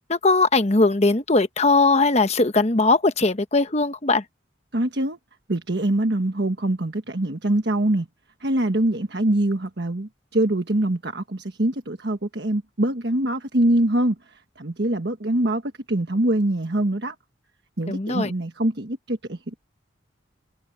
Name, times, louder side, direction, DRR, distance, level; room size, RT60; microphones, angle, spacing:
voice 1, 0.1-4.2 17.9-18.3, left 3 dB, 35° left, 1.0 m, -19 dB
voice 2, 4.7-5.2 5.5-8.1 8.4-17.1 17.8-19.6, right 1 dB, 60° right, 1.4 m, -24 dB
head